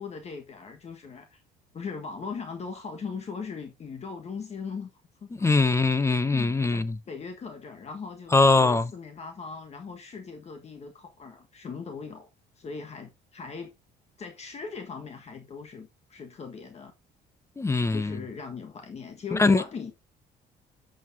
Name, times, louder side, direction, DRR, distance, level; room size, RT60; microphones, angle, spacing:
voice 1, 0.0-1.4 1.7-4.9 5.2-5.5 6.3-12.3 12.6-13.7 14.2-16.9 17.9-19.9, left 5 dB, 40° left, 1.5 m, -39 dB
voice 2, 5.4-7.0 8.3-8.9 17.6-18.2 19.3-19.6, left 3 dB, 15° left, 0.7 m, -22 dB
10.5 x 6.4 x 2.7 m
cardioid pair, 110°, 17 cm